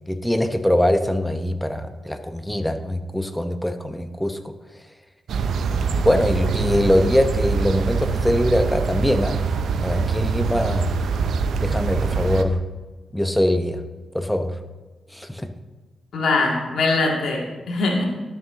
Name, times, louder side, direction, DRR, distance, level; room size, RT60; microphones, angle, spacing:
voice 1, 0.1-4.5 5.6-9.5 9.8-10.9 11.6-12.6 13.1-13.8 14.1-14.6 15.1-15.5, left 1 dB, 5° left, 8 dB, 0.9 m, -22 dB
sound 1, 5.3-12.4, right 5 dB, 75° right, 0.5 m, -24 dB
voice 2, 16.1-18.0, left 3 dB, 75° left, 0 dB, 2.0 m, -22 dB
12.0 x 6.7 x 3.8 m, 1.2 s
supercardioid pair, 50°, 0 cm